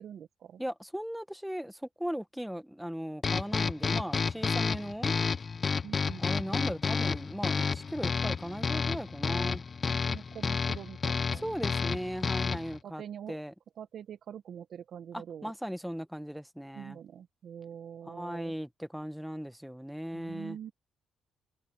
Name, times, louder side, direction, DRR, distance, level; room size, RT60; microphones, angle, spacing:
voice 1, 0.0-0.6 5.8-6.6 9.9-11.8 12.8-13.4 13.8-15.5 16.7-18.5 20.1-20.7, right 9 dB, 65° right, 1.3 m, -45 dB
voice 2, 0.6-5.1 6.2-9.6 11.4-13.0 13.3-13.5 15.1-17.0 18.1-20.6, equal, ahead, 1.4 m, -38 dB
sound 1, 3.2-12.8, left 5 dB, 40° left, 0.7 m, -30 dB
cardioid pair, 90°, 0 cm